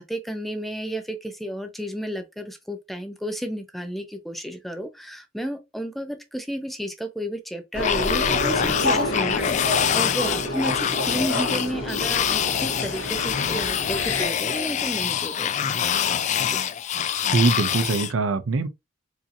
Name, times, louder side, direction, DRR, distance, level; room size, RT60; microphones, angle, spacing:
voice 1, 0.0-9.6 9.9-15.5 16.5-16.6, equal, ahead, 0.6 m, -32 dB
sound 1, 7.7-14.3, left 1 dB, 90° left, 1.5 m, -28 dB
sound 2, 7.8-18.1, left 9 dB, 35° left, 0.3 m, -25 dB
voice 2, 17.3-18.7, right 4 dB, 90° right, 0.6 m, -22 dB
4.8 x 2.8 x 2.6 m
head